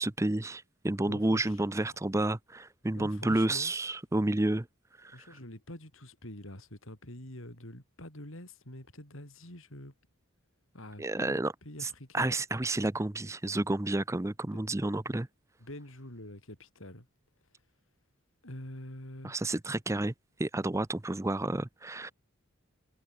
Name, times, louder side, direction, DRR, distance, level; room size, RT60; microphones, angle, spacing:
voice 1, 0.0-4.7 5.0-5.4 11.0-11.5 11.8-15.3 19.2-20.1 20.4-22.1, right 2 dB, 15° right, 0.5 m, -30 dB
voice 2, 1.1-1.5 3.0-3.7 5.1-9.9 10.7-11.4 11.6-12.3 14.5-14.6 15.6-17.1 18.4-19.3, left 1 dB, 65° left, 5.5 m, -46 dB
head